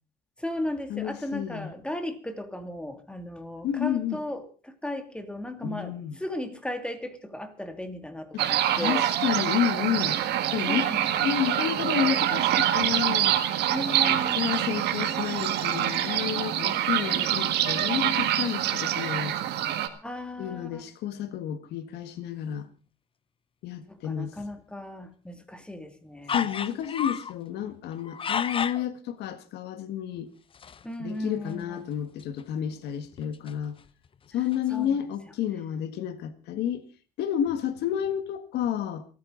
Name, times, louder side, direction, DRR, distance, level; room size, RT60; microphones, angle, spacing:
voice 1, 0.4-9.1 10.7-11.6 13.7-14.4 20.0-20.9 23.9-26.5 30.8-31.9 34.7-35.0, left 1 dB, 5° left, 2.5 m, -36 dB
voice 2, 0.9-1.7 3.6-4.2 5.6-6.2 8.3-8.5 8.7-10.2 10.5-10.8 11.2-13.4 14.0-19.4 20.4-22.7 23.6-24.3 26.3-30.3 31.0-33.8 34.3-36.8 37.2-39.0, left 10 dB, 80° left, 1.7 m, -30 dB
sound 1, 8.4-19.9, right 11 dB, 80° right, 1.8 m, -25 dB
sound 2, 26.3-27.3 27.9-28.8 30.5-30.9 31.2-31.3 31.5-31.6 32.2-32.4 33.0-34.1 34.5-34.6, left 7 dB, 30° left, 0.7 m, -32 dB
28.5 x 9.5 x 3.9 m
cardioid pair, 110°, 17 cm